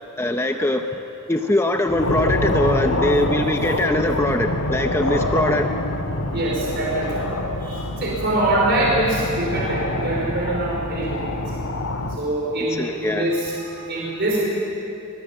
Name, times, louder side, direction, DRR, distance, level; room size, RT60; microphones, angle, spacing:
voice 1, 0.2-1.0 1.3-5.7 12.8-13.3, left 1 dB, 10° left, 5 dB, 0.7 m, -22 dB
sound 1, 1.9-12.2, left 1 dB, 75° left, 1.8 m, -25 dB
voice 2, 6.3-7.2 7.6-11.4 12.2-14.5, right 1 dB, 50° right, -3 dB, 4.7 m, -24 dB
25.0 x 19.5 x 8.6 m, 3.0 s
head